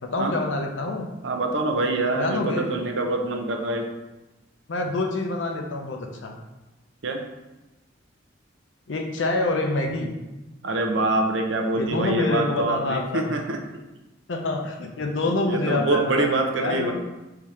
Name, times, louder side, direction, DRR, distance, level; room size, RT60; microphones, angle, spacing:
voice 1, 0.0-1.1 2.2-2.7 4.7-6.3 8.9-10.1 11.8-13.3 14.3-16.9, left 2 dB, 80° left, 2 dB, 0.7 m, -26 dB
voice 2, 1.2-3.9 7.0-7.2 10.6-13.6 15.5-16.9, right 2 dB, 80° right, 3 dB, 0.6 m, -25 dB
3.6 x 2.8 x 4.8 m, 1.0 s
head